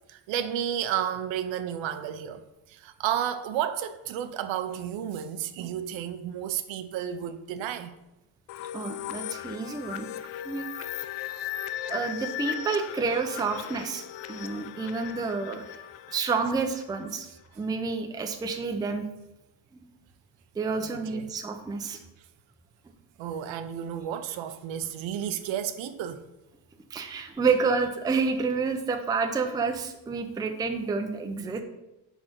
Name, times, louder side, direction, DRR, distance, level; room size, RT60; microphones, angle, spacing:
voice 1, 0.1-7.9 20.8-21.2 21.9-22.0 23.2-26.2, right 10 dB, 75° right, 0.7 m, -32 dB
sound 1, 8.5-17.1, left 11 dB, 70° left, 0.5 m, -37 dB
voice 2, 8.7-10.1 10.4-10.7 11.9-14.0 14.3-15.6 16.1-17.3 17.6-19.0 19.7-19.9 20.6-22.0 26.9-31.6, right 4 dB, 10° right, 0.4 m, -29 dB
5.0 x 4.1 x 5.9 m
cardioid pair, 145°, 46 cm